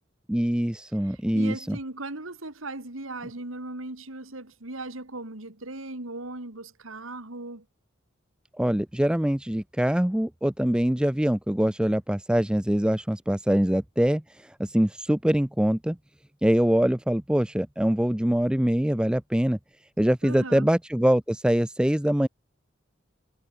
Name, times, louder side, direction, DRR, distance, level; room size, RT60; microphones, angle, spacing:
voice 1, 0.3-1.8 8.6-16.0 16.4-19.6 20.0-22.3, equal, 5° right, 0.4 m, -24 dB
voice 2, 1.0-7.7 20.2-20.7, right 2 dB, 85° right, 3.0 m, -38 dB
head